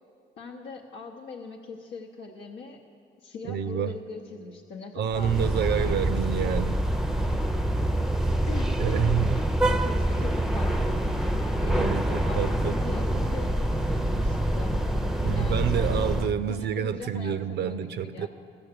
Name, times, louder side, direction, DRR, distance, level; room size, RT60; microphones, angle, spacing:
voice 1, 0.4-2.8 3.2-6.0 8.5-11.1 11.4-14.8 15.3-16.1 16.5-18.3, left 4 dB, 80° left, -2 dB, 0.8 m, -41 dB
voice 2, 3.5-3.9 4.9-6.8 8.8-9.4 11.6-12.8 15.2-18.3, right 9 dB, 60° right, 12 dB, 0.4 m, -28 dB
sound 1, 5.1-16.3, right 1 dB, ahead, 0.5 m, -26 dB
14.5 x 7.0 x 6.7 m, 2.3 s
cardioid pair, 90°, 20 cm